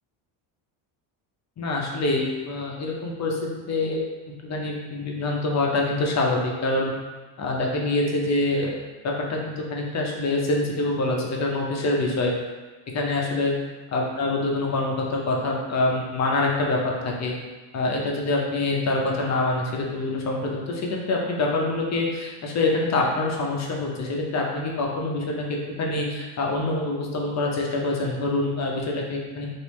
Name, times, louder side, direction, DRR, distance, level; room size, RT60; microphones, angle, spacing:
voice 1, 1.6-4.0 4.4-6.9 7.4-8.7 9.0-12.3 12.9-13.5 13.9-17.3 17.7-25.5 25.8-29.5, left 2 dB, 35° left, -1 dB, 0.6 m, -25 dB
3.3 x 2.6 x 3.0 m, 1.3 s
cardioid pair, 135°, 48 cm